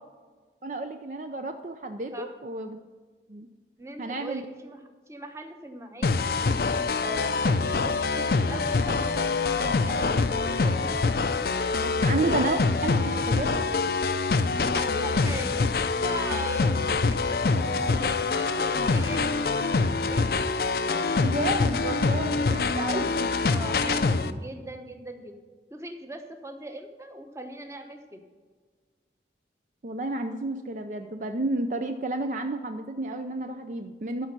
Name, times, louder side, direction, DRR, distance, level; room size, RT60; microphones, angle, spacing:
voice 1, 0.6-2.8 3.3-3.5 4.0-4.4 12.0-13.6 21.2-23.3 23.9-24.0 29.8-34.3, right 2 dB, 45° right, 7 dB, 0.4 m, -31 dB
voice 2, 3.8-4.8 5.1-6.3 7.0-11.0 11.7-12.0 12.3-12.4 13.0-13.6 14.7-15.6 15.9-19.3 19.6-20.4 23.4-25.3 25.7-28.2, right 1 dB, 15° right, 6 dB, 0.9 m, -40 dB
sound 1, 6.0-24.3, left 4 dB, 55° left, 0.5 m, -25 dB
12.5 x 5.2 x 5.9 m, 1.4 s
head